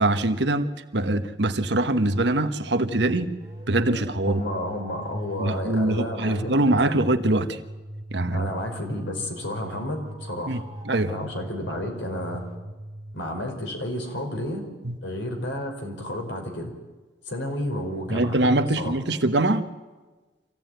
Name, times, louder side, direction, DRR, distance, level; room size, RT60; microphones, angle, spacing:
voice 1, 0.0-3.3 3.7-4.4 5.4-7.6 8.1-8.5 10.5-11.1 14.8-14.9 18.1-19.6, right 2 dB, 65° right, 9 dB, 1.3 m, -23 dB
sound 1, 2.8-14.2, right 1 dB, 20° right, 3.1 m, -41 dB
voice 2, 4.2-6.8 8.3-10.6 11.0-12.5 13.1-14.6 15.0-16.7 17.3-18.4 18.8-19.0, left 1 dB, 85° left, 3 dB, 4.9 m, -31 dB
25.0 x 16.0 x 9.3 m, 1.2 s
head